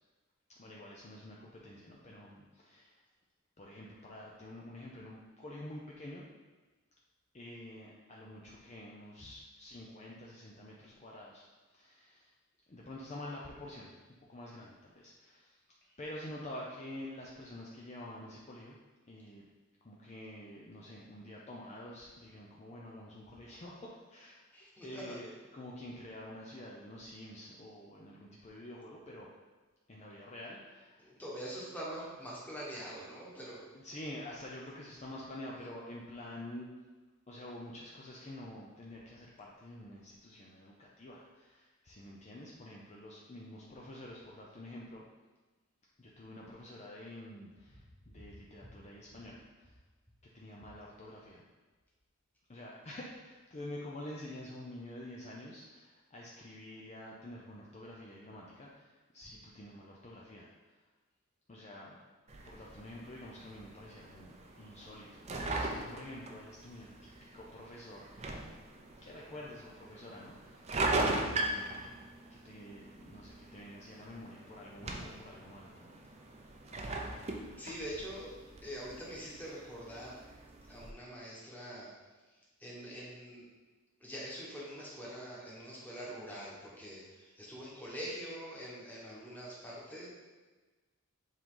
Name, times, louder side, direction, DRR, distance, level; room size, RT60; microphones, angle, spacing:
voice 1, 0.5-3.0 3.6-6.2 7.3-12.3 12.7-14.0 14.3-15.6 16.0-18.8 19.1-19.5 19.8-24.4 24.8-29.3 29.9-31.1 33.7-36.7 37.3-45.0 46.0-49.8 50.2-51.4 52.5-60.8 61.5-62.0 62.4-65.1 65.3-68.5 69.0-70.7 71.0-71.9 72.3-76.0, left 1 dB, 30° left, -3 dB, 0.6 m, -48 dB
voice 2, 24.5-25.2 31.0-33.6 48.2-48.3 77.6-78.3 78.6-80.2 80.7-81.9 82.6-83.5 84.0-90.1, equal, 10° left, -6 dB, 1.4 m, -44 dB
sound 1, 62.3-80.9, right 2 dB, 30° right, 0.6 m, -40 dB
7.4 x 3.8 x 3.8 m, 1.3 s
head